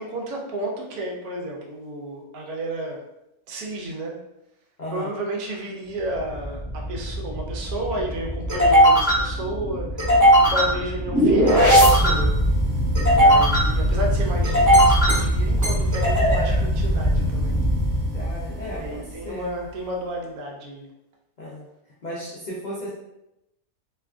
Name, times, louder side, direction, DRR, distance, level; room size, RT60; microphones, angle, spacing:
voice 1, 0.0-3.0 3.5-4.2 4.9-10.0 10.4-12.3 13.1-17.6 18.8-20.9, right 1 dB, 85° right, -1 dB, 1.1 m, -32 dB
voice 2, 4.8-5.1 18.1-19.6 21.4-21.6 22.0-22.9, left 1 dB, 70° left, -7 dB, 0.4 m, -35 dB
sound 1, 6.2-18.9, equal, 20° right, 0.5 m, -19 dB
2.8 x 2.4 x 2.3 m, 0.88 s
omnidirectional pair, 1.6 m